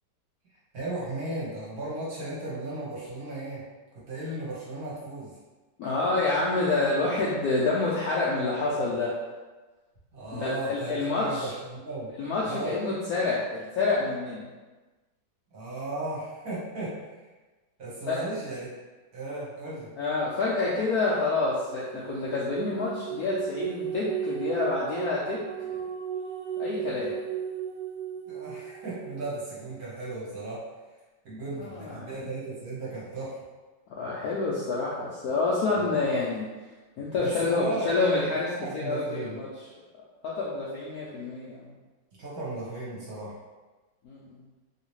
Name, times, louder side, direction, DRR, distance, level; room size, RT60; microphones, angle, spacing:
voice 1, 0.7-3.6 4.1-5.3 10.1-12.1 12.5-12.7 15.5-16.9 17.8-18.7 19.1-19.9 28.3-30.6 31.2-33.4 35.7-35.9 37.2-37.9 38.6-39.4 42.2-43.3, right 2 dB, 55° right, -7 dB, 1.3 m, -35 dB
voice 2, 5.8-9.1 10.3-11.5 12.2-14.4 18.1-18.2 20.0-25.8 26.6-27.2 31.6-32.1 33.9-36.5 37.0-39.5 40.2-41.7 44.0-44.4, left 3 dB, 75° left, -6 dB, 0.8 m, -28 dB
sound 1, 21.6-29.4, right 8 dB, 75° right, 1.2 m, -35 dB
3.1 x 2.8 x 3.0 m, 1.2 s
omnidirectional pair, 2.1 m